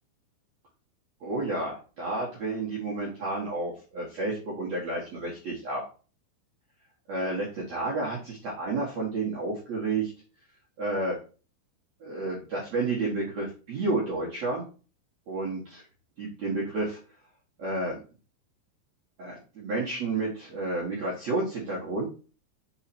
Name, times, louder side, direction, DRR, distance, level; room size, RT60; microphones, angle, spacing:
voice 1, 1.2-5.8 7.1-10.1 10.8-11.2 12.0-14.6 15.3-15.8 16.2-17.0 17.6-18.0 19.2-22.1, right 2 dB, 85° right, -5 dB, 1.5 m, -31 dB
6.8 x 4.2 x 4.3 m, 0.37 s
omnidirectional pair, 5.8 m